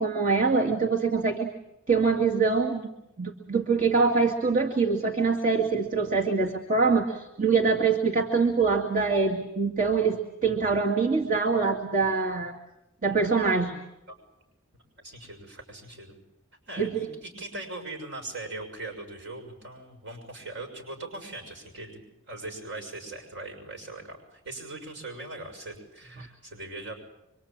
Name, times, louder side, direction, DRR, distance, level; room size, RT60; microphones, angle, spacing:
voice 1, 0.0-1.5 1.9-2.8 3.2-12.5 13.0-13.8 16.8-17.1, right 4 dB, 40° right, 0 dB, 2.3 m, -24 dB
voice 2, 15.0-16.2 16.7-22.0 22.3-26.9, right 2 dB, 60° right, 4 dB, 6.5 m, -40 dB
26.5 x 25.0 x 8.9 m, 0.88 s
head